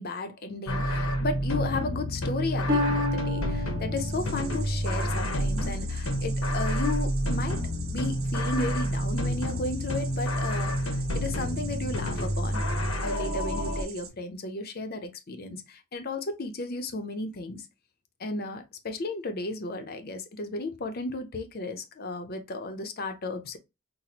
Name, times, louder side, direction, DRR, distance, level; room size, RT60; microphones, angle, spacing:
voice 1, 0.0-7.6 7.9-12.6 13.0-17.7 18.2-23.6, left 2 dB, 45° left, 0.6 m, -34 dB
sound 1, 0.7-13.8, equal, 85° left, 1.0 m, -29 dB
Harp, 2.7-6.4 7.0-7.4 8.0-8.1, left 2 dB, 15° right, 1.3 m, -33 dB
sound 2, 4.0-14.1, right 7 dB, 90° right, 1.2 m, -45 dB
5.9 x 2.1 x 2.8 m
head